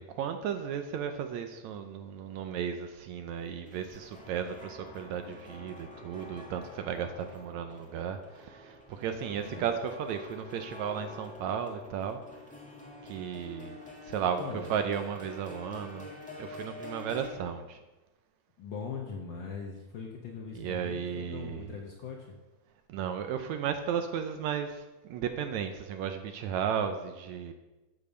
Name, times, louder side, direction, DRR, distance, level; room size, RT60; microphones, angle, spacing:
voice 1, 0.0-12.2 13.0-13.8 14.0-14.4 14.7-16.1 16.4-17.8 20.6-21.8 22.9-27.5, right 8 dB, 75° right, 7 dB, 1.9 m, -34 dB
sound 1, 3.4-17.3, left 2 dB, 10° left, 0.3 m, -48 dB
voice 2, 18.6-22.3, left 5 dB, 75° left, 1 dB, 1.0 m, -40 dB
8.6 x 7.1 x 6.5 m, 1.1 s
omnidirectional pair, 3.5 m